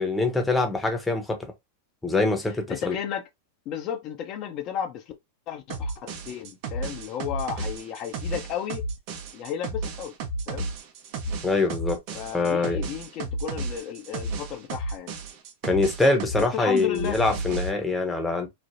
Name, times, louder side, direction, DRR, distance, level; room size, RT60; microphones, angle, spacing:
voice 1, 0.0-1.5 2.0-3.0 11.4-12.0 12.3-12.8 15.6-18.5, left 3 dB, 10° left, 0.8 m, -24 dB
voice 2, 2.7-3.2 3.7-5.1 5.5-8.8 9.3-10.1 10.5-10.7 12.1-15.1 16.4-17.2, left 9 dB, 45° left, 0.6 m, -33 dB
sound 1, 5.7-16.5 16.8-17.7, right 2 dB, 55° right, 0.7 m, -33 dB
3.2 x 2.0 x 2.5 m
hypercardioid pair, 105°, 0 cm